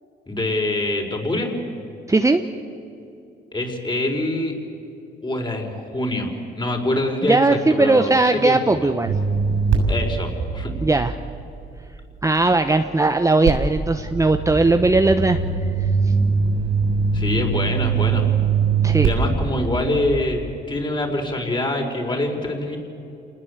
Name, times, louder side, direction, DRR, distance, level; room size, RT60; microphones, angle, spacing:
voice 1, 0.3-1.5 3.5-4.5 5.2-8.9 9.9-10.7 17.1-18.3 19.0-22.8, left 1 dB, 25° left, 3 dB, 5.0 m, -25 dB
voice 2, 2.1-2.4 7.2-9.1 10.8-11.1 12.2-15.4 15.8-16.1 18.8-19.1, right 2 dB, 15° right, 7 dB, 1.0 m, -18 dB
sound 1, 9.1-12.2 13.4-20.4, right 5 dB, 80° right, 6.9 m, -22 dB
28.0 x 20.0 x 8.2 m, 2.7 s
cardioid pair, 90°, 20 cm